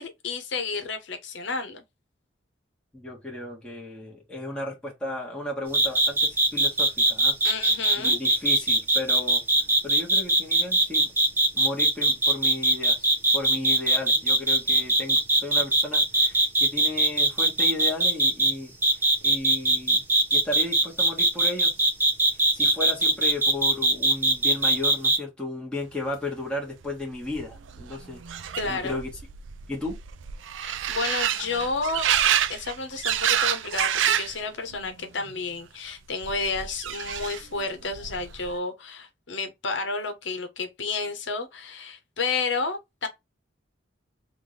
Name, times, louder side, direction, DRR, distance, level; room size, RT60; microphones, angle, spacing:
voice 1, 0.0-1.8 7.4-8.2 23.0-23.1 28.6-29.0 30.6-32.1 32.5-43.1, left 4 dB, 80° left, 1.0 m, -31 dB
voice 2, 2.9-7.3 8.0-9.4 9.8-11.1 11.5-18.7 19.0-20.0 20.3-21.7 22.5-29.1 29.7-30.0, left 2 dB, 5° left, 1.5 m, -34 dB
sound 1, 5.7-18.5 18.8-25.2, right 2 dB, 10° right, 1.3 m, -20 dB
sound 2, 26.8-26.9 27.1-34.4 34.7-35.3 36.2-37.6 37.9-38.5, right 10 dB, 85° right, 0.4 m, -28 dB
3.6 x 2.6 x 3.1 m
head